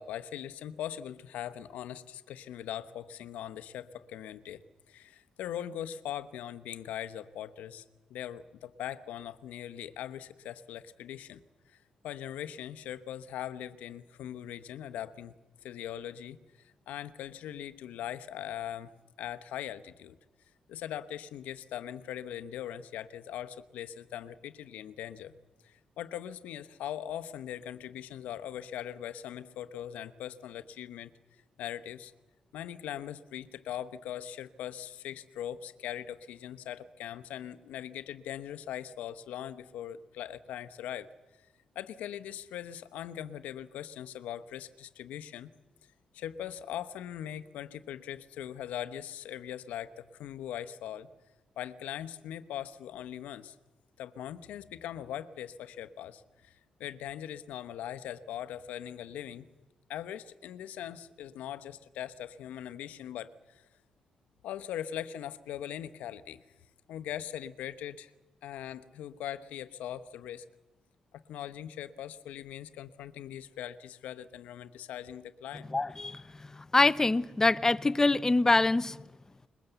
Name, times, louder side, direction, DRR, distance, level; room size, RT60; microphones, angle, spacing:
voice 1, 0.0-4.6 4.9-7.8 8.1-11.4 11.7-11.8 12.0-15.4 15.6-18.9 19.2-20.2 20.7-25.3 25.6-31.1 31.6-32.1 32.5-41.1 41.7-45.5 46.1-51.1 51.6-53.5 54.0-59.5 59.9-63.6 64.4-66.4 66.9-68.1 68.4-70.4 71.3-75.7, left 11 dB, 90° left, 0.9 m, -40 dB
voice 2, 75.7-79.0, left 2 dB, 20° left, 0.8 m, -25 dB
21.5 x 21.5 x 8.0 m
cardioid pair, 70°, 2 cm